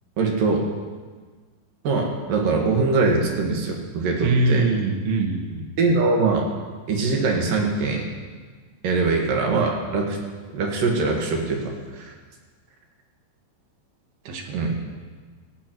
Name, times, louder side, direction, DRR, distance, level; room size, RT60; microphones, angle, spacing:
voice 1, 0.2-0.7 1.8-4.7 5.8-6.5 6.9-8.1 8.8-10.2 10.5-12.1 14.5-14.7, right 3 dB, 65° right, 1 dB, 3.0 m, -22 dB
voice 2, 4.2-5.7 14.3-14.6, right 2 dB, 90° right, 3 dB, 3.4 m, -23 dB
18.0 x 17.0 x 3.0 m, 1.4 s
omnidirectional pair, 4.4 m